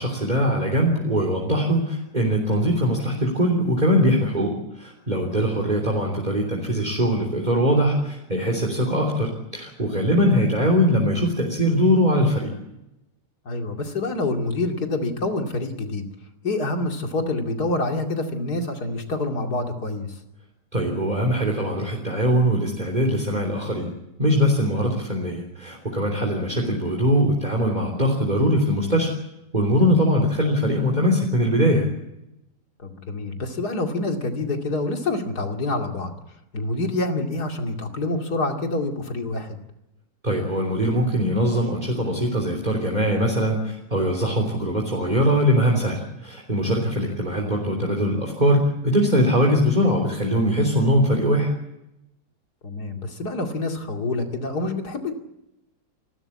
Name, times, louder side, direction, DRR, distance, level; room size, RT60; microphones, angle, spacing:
voice 1, 0.0-4.5 4.8-12.5 20.7-23.9 24.2-29.1 29.5-31.9 40.2-51.5, equal, 25° right, 0 dB, 3.5 m, -21 dB
voice 2, 13.4-16.0 16.4-20.1 24.8-24.9 32.8-36.1 36.5-39.6 46.8-46.9 52.6-55.1, left 2 dB, 70° left, 3 dB, 3.1 m, -27 dB
29.0 x 12.5 x 8.6 m, 0.89 s
omnidirectional pair, 1.7 m